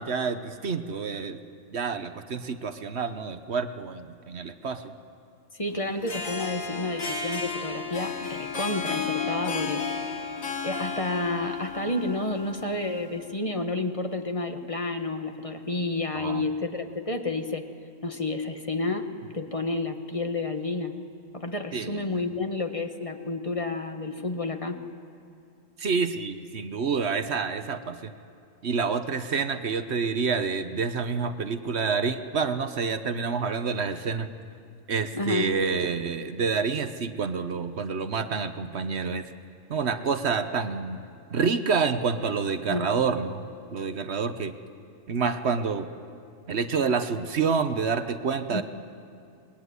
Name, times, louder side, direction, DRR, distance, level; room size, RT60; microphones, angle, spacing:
voice 1, 0.0-1.4 1.7-4.9 16.1-16.4 21.7-22.3 25.8-28.1 28.6-34.3 34.9-39.2 39.7-41.0 41.3-43.4 43.7-44.5 45.1-45.9 46.5-48.6, right 5 dB, 55° right, 9 dB, 1.3 m, -28 dB
voice 2, 5.5-9.8 10.6-17.6 18.0-19.1 19.3-21.0 21.3-24.8 35.1-35.5 42.7-42.9 48.5-48.6, left 2 dB, 25° left, 6 dB, 1.5 m, -30 dB
Harp, 5.9-13.2, left 4 dB, 85° left, 2.2 m, -33 dB
26.5 x 20.5 x 9.6 m, 2.4 s
omnidirectional pair, 1.4 m